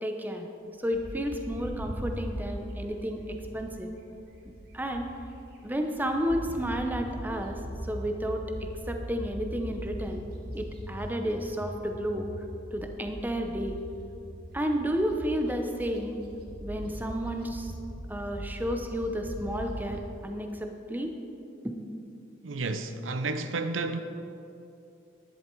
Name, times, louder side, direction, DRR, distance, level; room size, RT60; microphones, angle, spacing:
voice 1, 0.0-0.5 0.8-3.9 4.4-5.1 5.6-8.4 8.9-10.2 10.5-12.3 12.7-13.8 14.5-16.2 16.6-17.7 18.1-21.1 21.6-21.7, equal, 10° right, 0.8 m, -32 dB
Bird, 0.9-5.4 5.8-20.0, equal, 50° right, 1.9 m, -40 dB
voice 2, 22.4-24.0, right 3 dB, 80° right, 0.7 m, -31 dB
11.0 x 11.0 x 4.6 m
head